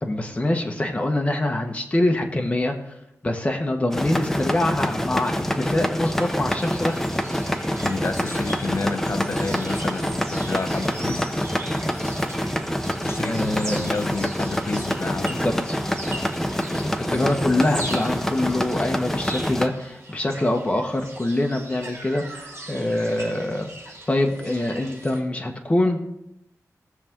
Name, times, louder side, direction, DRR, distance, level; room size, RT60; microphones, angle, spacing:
voice 1, 0.0-2.7 3.2-7.0 13.2-13.8 15.3-15.8 16.7-23.7 24.1-26.0, left 1 dB, 20° left, 2 dB, 1.5 m, -24 dB
sound 1, 3.9-19.7, equal, 5° left, 0.8 m, -26 dB
sound 2, 6.2-25.2, right 2 dB, 50° right, 3.8 m, -40 dB
voice 2, 7.8-11.3 13.0-15.5 16.0-16.3, left 3 dB, 45° left, 7 dB, 0.9 m, -30 dB
19.5 x 6.8 x 3.8 m, 0.85 s
wide cardioid pair, 125°, 6 cm